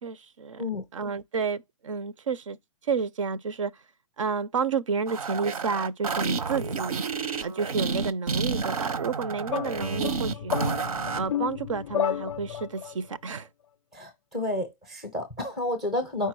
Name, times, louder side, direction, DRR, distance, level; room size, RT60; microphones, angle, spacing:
voice 1, 0.0-0.6 0.9-2.6 2.8-3.8 4.2-7.0 7.4-10.5 11.1-13.5, right 5 dB, 60° right, 0.5 m, -30 dB
sound 1, 5.1-11.3, right 5 dB, 80° right, 0.9 m, -30 dB
sound 2, 9.5-12.9, left 9 dB, 65° left, 0.4 m, -31 dB
voice 2, 13.9-16.3, left 1 dB, ahead, 0.5 m, -30 dB
4.6 x 4.6 x 4.6 m
hypercardioid pair, 180°, 18 cm